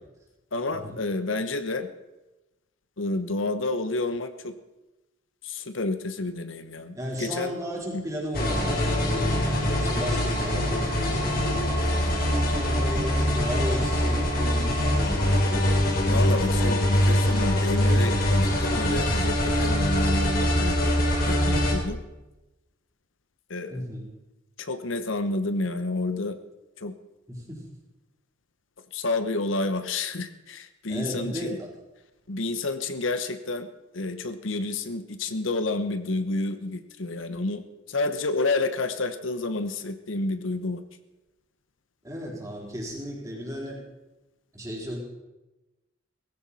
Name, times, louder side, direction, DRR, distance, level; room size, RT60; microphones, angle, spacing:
voice 1, 0.5-1.9 3.0-4.5 5.4-7.5 7.9-8.0 16.1-20.9 21.2-22.0 23.5-23.8 24.6-26.4 26.8-26.9 28.9-31.6 32.3-33.7 33.9-40.8, left 2 dB, 80° left, 10 dB, 1.0 m, -30 dB
voice 2, 6.9-15.6 23.7-24.0 27.3-27.6 30.9-31.7 42.0-43.8 44.5-45.0, equal, 15° right, -2 dB, 3.9 m, -35 dB
sound 1, 8.3-21.7, equal, 50° left, 3.1 m, -23 dB
18.0 x 16.0 x 4.3 m, 1.0 s
head